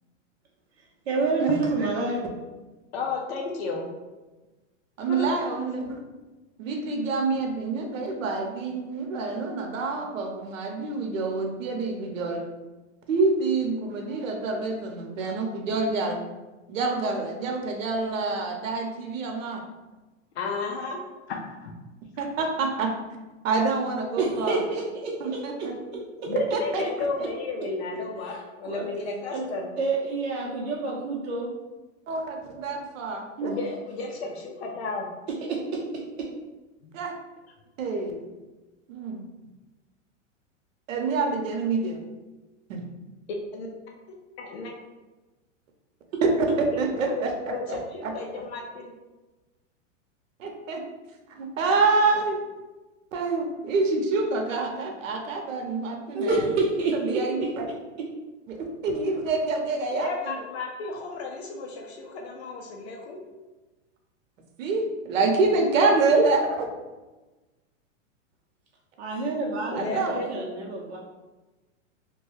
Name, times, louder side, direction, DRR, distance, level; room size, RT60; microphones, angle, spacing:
voice 1, 1.1-2.2 24.2-26.3 28.6-28.8 29.3-29.4 29.8-31.5 33.4-33.5 35.5-35.8 46.1-46.2 56.1-57.5 69.0-71.0, right 3 dB, 55° right, -3 dB, 0.7 m, -28 dB
voice 2, 2.9-3.9 5.0-5.3 20.3-21.0 21.3-21.7 26.2-29.7 33.4-35.1 36.8-37.0 43.5-43.7 44.4-44.7 47.1-47.2 47.5-48.9 59.9-63.2 69.7-70.7, left 3 dB, 55° left, 0 dB, 0.6 m, -33 dB
voice 3, 5.0-6.0 6.6-12.4 13.1-16.2 16.7-19.6 22.2-22.9 23.4-24.6 25.2-25.7 26.5-27.3 32.1-33.5 36.9-37.1 37.8-38.2 38.9-39.2 40.9-42.0 42.7-42.8 46.2-48.1 50.4-50.8 51.3-52.4 53.1-56.3 57.0-57.7 58.5-60.3 64.6-66.7 69.7-70.2, right 3 dB, 85° right, 3 dB, 0.8 m, -27 dB
3.0 x 2.2 x 3.1 m, 1.2 s
supercardioid pair, 155°, 38 cm